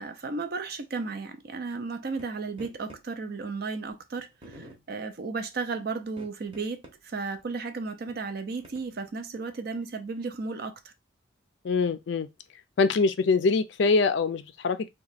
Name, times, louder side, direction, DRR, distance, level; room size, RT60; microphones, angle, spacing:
voice 1, 0.0-10.9, right 4 dB, 50° right, 0.5 m, -34 dB
sound 1, 2.2-2.3 2.6-3.0 3.9-4.0 4.4-4.8 6.1-6.9 7.4-7.5 8.1-9.1, right 1 dB, 30° right, 0.8 m, -48 dB
voice 2, 11.6-12.3 12.8-14.9, left 4 dB, 60° left, 0.4 m, -24 dB
2.9 x 2.2 x 4.1 m
head